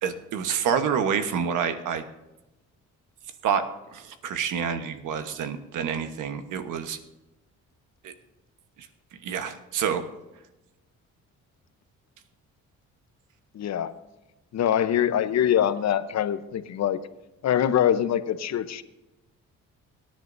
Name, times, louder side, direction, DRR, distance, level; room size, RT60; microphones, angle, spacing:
voice 1, 0.0-2.0 3.4-3.6 3.9-7.0 8.0-8.1 8.8-8.9 9.2-10.1, right 7 dB, 85° right, 8 dB, 1.2 m, -28 dB
voice 2, 13.5-13.9 14.5-17.0 17.4-18.8, left 10 dB, 60° left, 12 dB, 0.9 m, -24 dB
24.5 x 10.0 x 2.7 m, 1.0 s
cardioid pair, 90°, 30 cm